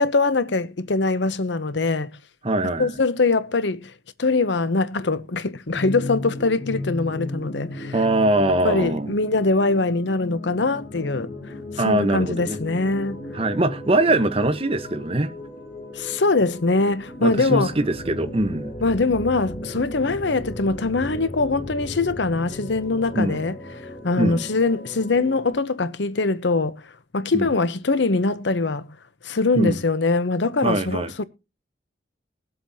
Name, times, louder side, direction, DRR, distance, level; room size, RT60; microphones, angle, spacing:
voice 1, 0.0-2.1 2.8-3.9 4.2-7.9 8.6-11.3 11.7-13.2 15.9-17.7 18.8-23.6 24.0-26.8 27.1-28.9 29.2-31.2, left 3 dB, 75° left, 0.8 m, -22 dB
voice 2, 2.4-2.9 7.9-9.1 11.8-12.6 13.3-15.3 17.2-18.7 23.1-23.4 24.2-24.4 27.3-27.5 29.5-29.8 30.6-31.1, right 2 dB, 30° right, 1.1 m, -22 dB
sound 1, 5.7-25.5, left 1 dB, 50° left, 7.7 m, -36 dB
20.5 x 7.8 x 2.7 m
head